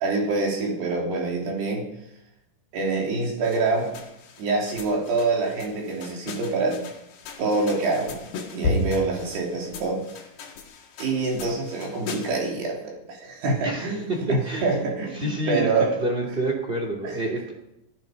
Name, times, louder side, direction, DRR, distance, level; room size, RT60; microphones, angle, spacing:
voice 1, 0.0-1.8 2.7-3.9 4.4-6.8 7.4-8.2 8.5-10.0 11.0-16.0 17.0-17.5, right 3 dB, 60° right, -1 dB, 5.2 m, -26 dB
sound 1, 3.4-12.5, left 3 dB, 60° left, 3.8 m, -35 dB
voice 2, 13.6-14.7 15.1-15.7 16.0-17.5, right 1 dB, 20° right, 1 dB, 1.4 m, -28 dB
17.0 x 15.0 x 5.4 m, 0.84 s
omnidirectional pair, 5.7 m